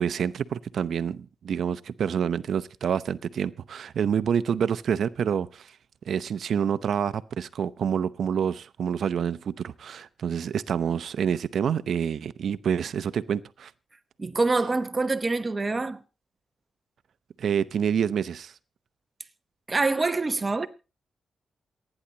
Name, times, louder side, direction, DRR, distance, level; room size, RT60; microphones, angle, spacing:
voice 1, 0.0-5.7 6.1-13.7 17.4-18.5, right 7 dB, 65° right, 0.7 m, -27 dB
voice 2, 14.2-16.0 19.7-20.7, right 3 dB, 25° right, 0.9 m, -25 dB
28.0 x 9.9 x 2.9 m
wide cardioid pair, 140°, 0 cm